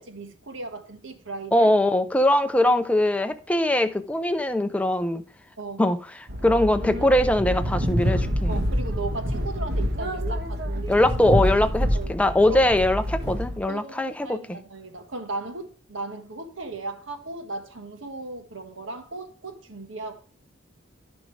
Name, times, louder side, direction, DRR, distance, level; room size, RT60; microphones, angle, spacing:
voice 1, 0.0-1.7 5.6-5.8 8.5-10.9 11.9-12.1 12.5-12.7 13.7-20.2, right 3 dB, 75° right, 1.5 m, -36 dB
voice 2, 1.5-5.2 5.8-8.5 10.9-14.6, left 1 dB, 5° left, 0.5 m, -22 dB
sound 1, 6.3-13.6, equal, 55° right, 1.4 m, -27 dB
14.5 x 5.2 x 3.3 m
head